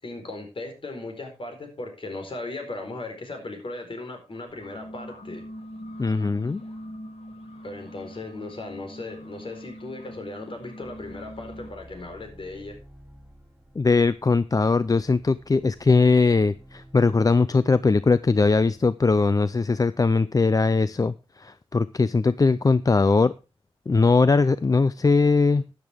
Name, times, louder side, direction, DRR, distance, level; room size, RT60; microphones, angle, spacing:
voice 1, 0.0-5.4 7.6-12.8, left 2 dB, 55° left, 4 dB, 4.4 m, -37 dB
sound 1, 4.5-11.7, equal, 75° left, 6.8 m, -42 dB
voice 2, 6.0-6.6 13.8-23.3 23.9-25.6, left 4 dB, 35° left, 16 dB, 0.5 m, -20 dB
sound 2, 10.8-18.8, equal, 10° right, 2.9 m, -51 dB
12.5 x 10.5 x 3.5 m, 0.30 s
wide cardioid pair, 70°, 11 cm